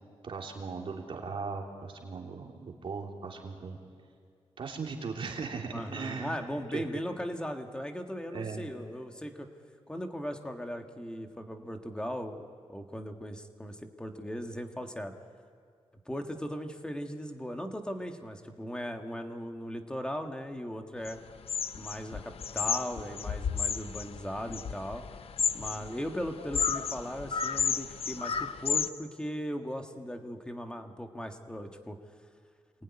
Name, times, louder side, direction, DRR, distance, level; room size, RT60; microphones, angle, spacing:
voice 1, 0.2-3.8 4.6-6.3 6.7-6.8 8.3-8.7, right 5 dB, 55° right, 1 dB, 3.1 m, -38 dB
voice 2, 5.7-9.5 9.9-15.1 16.0-21.2 21.7-25.0 25.5-32.0, equal, 10° left, 5 dB, 1.6 m, -38 dB
sound 1, 21.0-21.1 21.5-28.9, left 6 dB, 65° left, 0.8 m, -32 dB
27.5 x 21.0 x 9.9 m, 2.1 s
wide cardioid pair, 175°, 11 cm